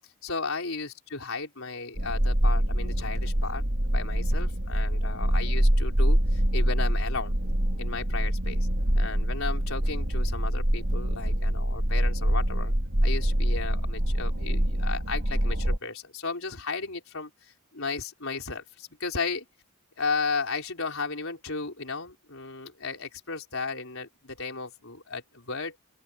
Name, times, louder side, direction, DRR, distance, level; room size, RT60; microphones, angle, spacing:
voice 1, 0.2-3.6 3.9-7.3 7.8-8.7 8.9-12.7 13.0-19.4 20.0-25.8, left 4 dB, 65° left, 5.2 m, -34 dB
sound 1, 2.0-15.8, equal, 70° right, 3.5 m, -25 dB
open air
head